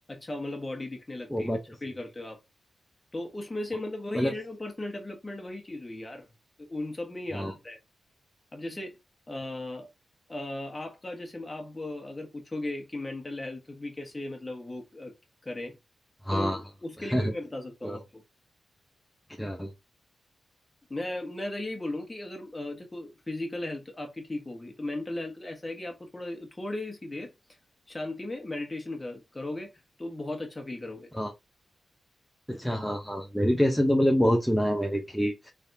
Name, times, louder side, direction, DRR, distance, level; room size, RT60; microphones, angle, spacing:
voice 1, 0.1-1.5 1.8-2.4 3.1-6.3 6.6-7.8 8.5-9.0 9.3-9.9 10.3-15.1 15.4-15.8 16.3-18.2 20.9-27.3 27.9-29.7 30.0-31.1, left 1 dB, 20° left, 1.3 m, -36 dB
voice 2, 1.3-1.6 4.1-4.3 7.3-7.5 16.3-16.6 17.1-17.3 17.8-18.0 19.4-19.7 31.1-31.3 32.5-35.5, equal, ahead, 0.6 m, -26 dB
4.0 x 3.5 x 2.7 m
wide cardioid pair, 120°, 0 cm